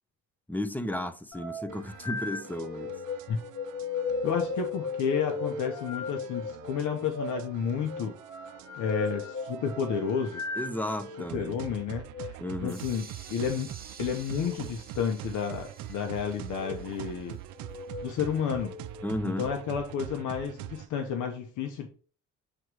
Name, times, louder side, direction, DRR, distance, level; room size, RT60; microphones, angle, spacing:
voice 1, 0.5-2.9 10.6-11.6 12.4-12.8 19.0-19.5, left 1 dB, 5° left, 0.7 m, -33 dB
sound 1, 1.3-11.3 12.0-12.3 14.3-14.6 15.4-15.9 16.5-16.8 17.6-18.1 18.5-19.6, left 4 dB, 60° left, 1.9 m, -37 dB
sound 2, 1.7-20.9, right 14 dB, 80° right, 0.5 m, -44 dB
voice 2, 4.2-8.1 8.8-10.4 11.3-13.7 14.0-17.4 18.0-18.7 19.2-21.9, left 7 dB, 80° left, 0.9 m, -31 dB
sound 3, 12.7-18.5, right 5 dB, 30° right, 1.1 m, -51 dB
7.9 x 3.0 x 4.7 m
cardioid pair, 90°, 30 cm